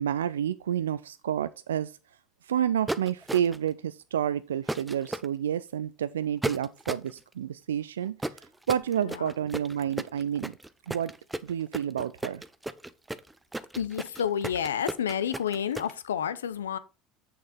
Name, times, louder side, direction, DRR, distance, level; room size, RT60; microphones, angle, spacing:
voice 1, 0.0-2.0 2.4-10.6 10.9-11.1 11.4-12.4, right 9 dB, 90° right, 0.3 m, -30 dB
sound 1, 2.9-3.7 4.7-5.3 6.4-7.1 8.2-15.9, right 2 dB, 10° right, 0.8 m, -34 dB
voice 2, 9.0-9.3 13.8-16.8, left 8 dB, 90° left, 0.7 m, -30 dB
7.8 x 6.6 x 4.3 m
hypercardioid pair, 75°, 0 cm